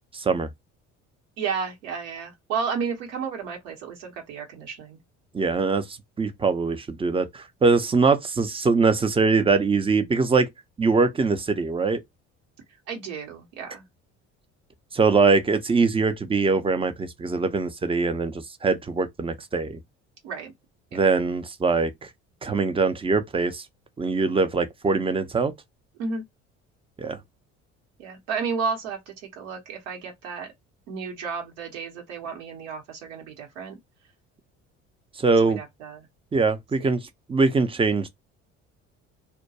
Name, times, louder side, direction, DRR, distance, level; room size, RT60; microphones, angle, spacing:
voice 1, 0.1-0.5 5.3-5.9 6.2-10.5 10.8-12.0 14.9-19.8 20.9-21.9 22.4-23.6 24.0-25.5 27.0-27.2 35.2-35.6 36.3-38.1, right 4 dB, 15° right, 0.5 m, -22 dB
voice 2, 1.4-5.0 12.9-13.8 20.2-20.5 20.9-21.0 26.0-26.2 28.0-30.5 30.9-33.8 35.5-36.0 36.8-36.9, right 5 dB, 75° right, 1.0 m, -32 dB
2.2 x 2.2 x 2.7 m
hypercardioid pair, 60°, 36 cm